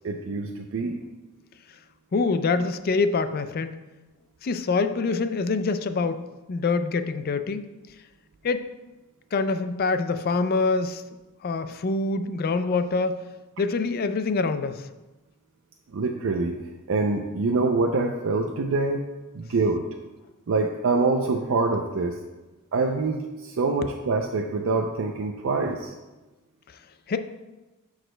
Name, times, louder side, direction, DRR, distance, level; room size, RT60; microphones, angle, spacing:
voice 1, 0.0-1.0 15.9-16.6 16.9-19.0 19.3-19.8 20.5-22.2 22.7-25.9, right 3 dB, 60° right, 3 dB, 0.4 m, -25 dB
voice 2, 2.1-3.7 4.4-6.2 6.5-7.6 8.4-8.7 9.3-11.0 11.4-13.2 13.6-14.8 27.1-27.2, left 4 dB, 45° left, 10 dB, 0.4 m, -25 dB
12.0 x 4.8 x 2.2 m, 1.1 s
head